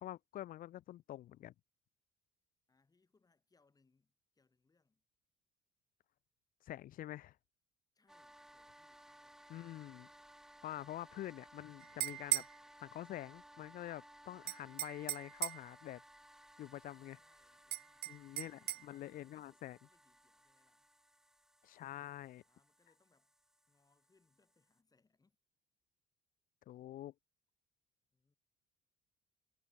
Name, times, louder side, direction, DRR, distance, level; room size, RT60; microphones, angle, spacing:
voice 1, 0.0-1.5 6.6-7.4 9.5-10.1 10.6-12.5 12.8-16.0 16.6-17.2 18.1-19.8 21.6-22.4 26.7-27.1, left 13 dB, 55° left, 0.5 m, -47 dB
voice 2, 2.7-5.0 7.9-9.9 16.8-20.9 22.4-23.3 23.7-25.4 28.1-28.4, left 4 dB, 20° left, 6.8 m, -76 dB
sound 1, 8.1-24.8, right 1 dB, 5° right, 1.0 m, -61 dB
sound 2, 11.8-12.6 14.5-15.7 17.7-18.8, right 17 dB, 65° right, 0.4 m, -38 dB
cardioid pair, 110°, 17 cm